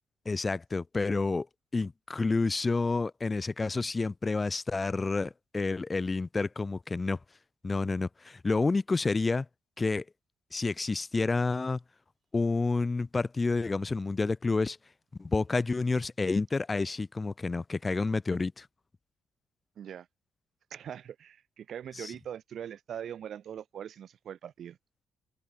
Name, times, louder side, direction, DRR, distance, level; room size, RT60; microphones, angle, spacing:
voice 1, 0.3-1.5 1.7-7.2 7.6-9.5 9.8-10.0 10.5-11.8 12.3-14.8 15.2-18.7 22.0-22.1, left 3 dB, 25° left, 0.7 m, -29 dB
voice 2, 19.8-20.1 20.7-24.8, right 9 dB, 65° right, 3.2 m, -41 dB
cardioid pair, 90°, 0 cm